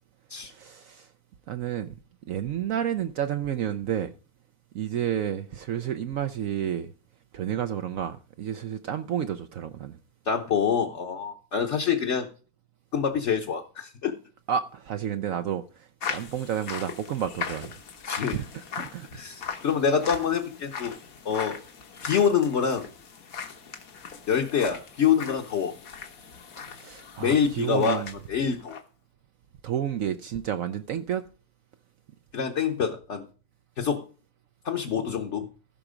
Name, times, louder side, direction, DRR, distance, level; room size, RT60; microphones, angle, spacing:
voice 1, 0.4-1.1 1.5-2.0 2.3-4.1 4.7-6.9 7.3-10.0 14.5-17.8 18.3-19.2 26.8-28.1 29.6-31.3, right 9 dB, 65° right, 1.0 m, -31 dB
voice 2, 10.3-12.3 12.9-14.1 18.1-18.4 19.1-20.9 21.2-21.6 22.0-22.9 24.3-25.7 27.2-28.8 32.3-33.2 33.8-34.0 34.6-35.5, left 7 dB, 55° left, 1.2 m, -26 dB
sound 1, 16.0-28.2 28.5-28.8, left 6 dB, 70° left, 1.6 m, -39 dB
15.0 x 5.9 x 5.0 m
omnidirectional pair, 1.6 m